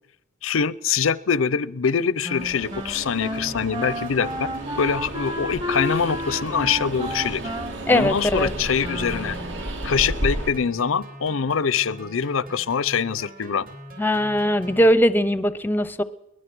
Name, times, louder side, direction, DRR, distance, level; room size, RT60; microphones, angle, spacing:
voice 1, 0.4-7.4 7.9-9.4 9.8-13.6, left 6 dB, 90° left, 20 dB, 0.6 m, -24 dB
Wind instrument woodwind instrument, 2.2-9.7, equal, 25° right, 1.4 m, -32 dB
Train, 2.4-10.5, right 1 dB, 65° right, 2.9 m, -33 dB
sound 1, 3.3-14.9, right 1 dB, 45° right, 4.1 m, -43 dB
voice 2, 7.9-8.5 14.0-16.0, equal, 10° left, 15 dB, 0.7 m, -20 dB
22.5 x 19.5 x 6.1 m, 0.88 s
head